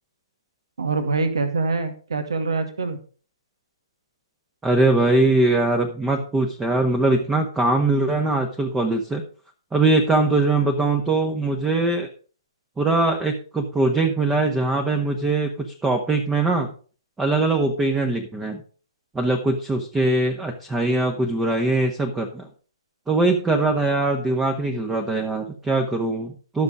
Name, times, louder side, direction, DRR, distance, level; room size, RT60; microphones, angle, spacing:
voice 1, 0.8-3.0, right 3 dB, 65° right, 8 dB, 2.1 m, -24 dB
voice 2, 4.6-9.2 9.7-12.1 12.8-16.7 17.2-18.6 19.1-22.5 23.1-26.6, right 2 dB, 10° right, 4 dB, 1.4 m, -21 dB
13.0 x 6.8 x 5.0 m, 0.40 s
figure-of-eight pair, 125°, 3 cm